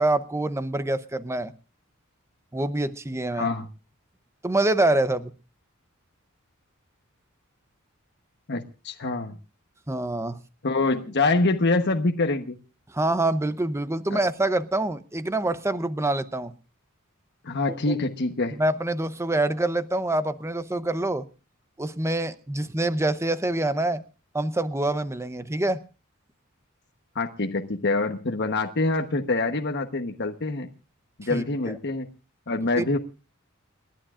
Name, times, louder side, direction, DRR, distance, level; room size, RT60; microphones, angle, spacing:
voice 1, 0.0-1.5 2.5-3.5 4.4-5.3 9.9-10.4 12.9-16.5 17.7-18.0 18.6-21.2 21.8-24.0 24.3-25.8 31.3-31.4 32.8-32.9, right 2 dB, 15° right, 12 dB, 0.7 m, -26 dB
voice 2, 3.3-3.7 8.5-9.4 10.6-12.6 14.1-14.2 17.4-18.6 27.1-30.7 31.2-32.1 32.5-33.0, left 3 dB, 55° left, 4 dB, 1.1 m, -25 dB
29.5 x 11.5 x 2.5 m, 0.34 s
head